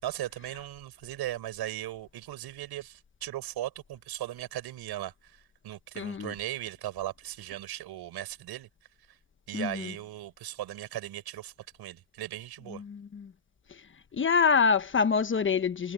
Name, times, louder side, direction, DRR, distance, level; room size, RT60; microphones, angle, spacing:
voice 1, 0.0-8.7 9.1-9.2 9.5-11.5 11.8-12.8, right 14 dB, 70° right, 6.6 m, -38 dB
voice 2, 6.0-6.3 9.5-9.9 12.7-13.3 13.7-13.8 14.1-15.9, left 5 dB, 30° left, 1.1 m, -26 dB
cardioid pair, 95°, 39 cm